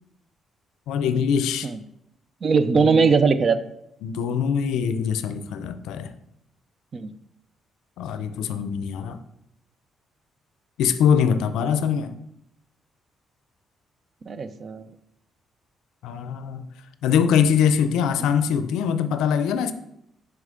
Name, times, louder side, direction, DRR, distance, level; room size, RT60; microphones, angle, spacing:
voice 1, 0.9-1.7 2.8-3.0 4.0-6.1 8.0-9.2 10.8-12.2 16.0-16.7 17.0-19.7, left 7 dB, 90° left, 11 dB, 0.4 m, -23 dB
voice 2, 2.4-3.6 6.9-7.1 14.2-14.8, right 5 dB, 45° right, 12 dB, 0.5 m, -20 dB
6.2 x 4.8 x 3.8 m, 0.80 s
cardioid pair, 90°, 0 cm